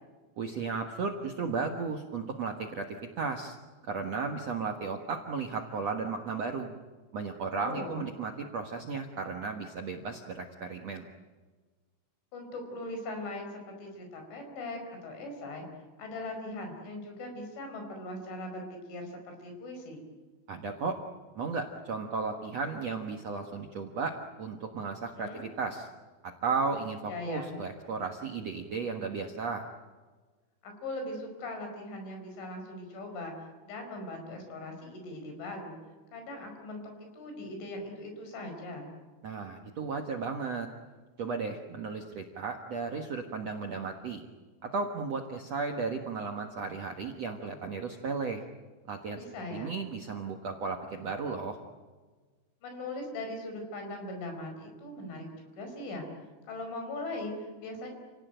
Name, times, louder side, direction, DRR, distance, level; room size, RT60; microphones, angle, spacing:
voice 1, 0.4-3.6 3.9-6.7 7.1-11.0 20.5-21.0 21.3-25.9 26.2-29.7 39.2-40.7 41.2-44.2 44.6-48.4 48.9-49.2 49.5-51.6, right 4 dB, 65° right, 3 dB, 1.6 m, -34 dB
voice 2, 7.5-8.0 12.3-15.7 16.0-20.0 25.2-25.5 27.1-27.6 30.6-33.3 33.6-35.8 36.1-36.8 37.1-38.9 49.2-49.8 52.6-55.3 55.6-56.1 56.5-57.9, left 2 dB, 85° left, 4 dB, 7.4 m, -40 dB
29.0 x 18.0 x 9.1 m, 1.4 s
omnidirectional pair, 5.3 m